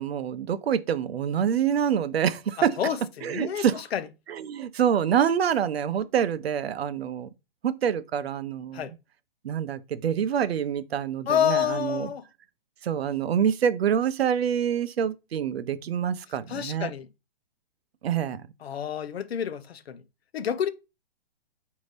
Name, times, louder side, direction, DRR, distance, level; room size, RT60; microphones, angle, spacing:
voice 1, 0.0-2.8 3.2-3.8 4.3-7.3 7.6-8.9 9.4-12.1 12.8-16.9 18.0-18.4, right 8 dB, 80° right, 0.6 m, -26 dB
voice 2, 2.6-4.1 8.7-8.9 11.3-12.3 16.5-17.1 18.6-20.0 20.3-20.7, left 9 dB, 80° left, 0.7 m, -28 dB
5.2 x 2.7 x 3.2 m
hypercardioid pair, 165°, 30 cm